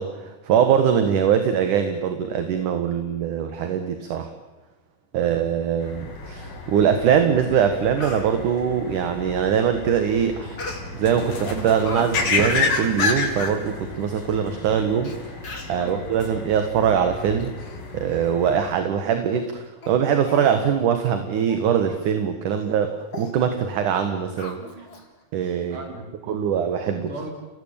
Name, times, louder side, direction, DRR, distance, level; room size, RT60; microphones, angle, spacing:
voice 1, 0.0-4.3 5.1-10.6 10.9-15.4 15.7-17.6 17.9-24.6 25.3-25.8 26.3-27.1, right 8 dB, 65° right, 7 dB, 3.0 m, -22 dB
voice 2, 5.1-5.4 15.7-16.0 24.6-24.9 25.7-26.4 26.9-27.3, right 2 dB, 35° right, 2 dB, 5.9 m, -39 dB
sound 1, 5.8-18.6, left 4 dB, 90° left, 5.9 m, -30 dB
Speech, 7.3-7.4 7.7-8.3 10.6-11.1 11.5-12.1 12.4-12.5 13.1-13.2 13.4-13.5 14.3-14.4 15.0-15.1 15.4-15.8 16.5-16.7 17.1-17.8 18.1-18.3 18.7-18.8 19.3-19.5 19.8-19.9 20.2-20.6 21.0-21.1 21.5-21.7 22.0-22.2 22.6-22.7 23.1-23.3 24.4-25.0 25.4-25.5, left 3 dB, 30° left, 3.3 m, -38 dB
30.0 x 18.5 x 9.0 m, 1.2 s
omnidirectional pair, 4.0 m